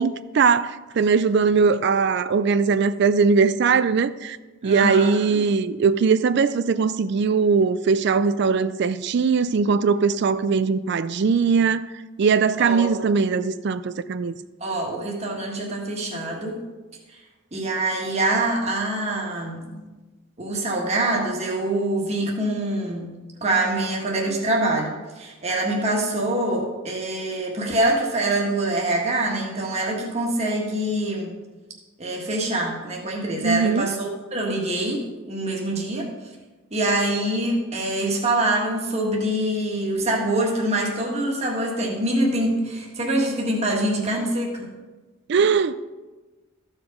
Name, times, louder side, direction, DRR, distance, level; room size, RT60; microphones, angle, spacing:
voice 1, 0.0-4.4 4.6-11.9 12.2-14.3 33.4-33.9 45.3-45.8, right 5 dB, 55° right, 0.4 m, -20 dB
voice 2, 4.6-5.4 12.6-12.9 14.6-16.6 17.1-17.2 17.5-19.9 20.4-23.1 23.4-31.3 32.0-36.1 36.7-44.7, right 1 dB, 30° right, 1.5 m, -25 dB
14.0 x 4.9 x 5.2 m
head